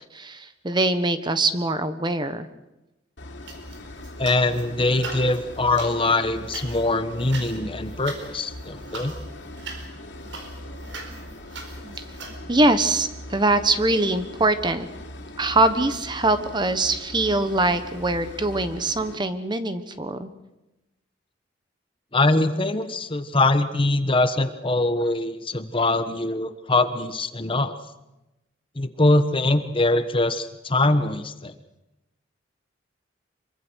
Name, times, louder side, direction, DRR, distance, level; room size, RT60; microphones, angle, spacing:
voice 1, 0.1-2.5 11.1-11.4 11.8-14.9 15.4-20.3, right 2 dB, 25° right, 10 dB, 1.3 m, -23 dB
sound 1, 3.2-19.2, left 1 dB, 80° left, 3.4 m, -40 dB
sound 2, 3.4-4.6 4.9-12.4, right 3 dB, 85° right, 4.7 m, -40 dB
voice 2, 4.2-9.1 22.1-27.7 28.8-31.5, left 2 dB, 30° left, 10 dB, 1.3 m, -23 dB
26.0 x 24.0 x 6.4 m, 0.97 s
head